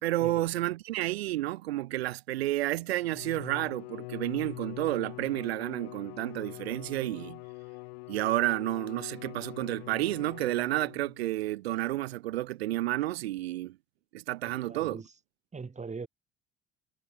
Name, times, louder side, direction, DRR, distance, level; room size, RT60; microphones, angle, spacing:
voice 1, 0.0-7.4 8.1-13.8 14.1-15.0, right 16 dB, 70° right, 1.1 m, -31 dB
Bowed string instrument, 3.0-11.3, left 32 dB, 65° left, 5.1 m, -44 dB
voice 2, 14.4-15.1 15.5-16.1, right 4 dB, 20° right, 3.3 m, -41 dB
figure-of-eight pair, 55°, 32 cm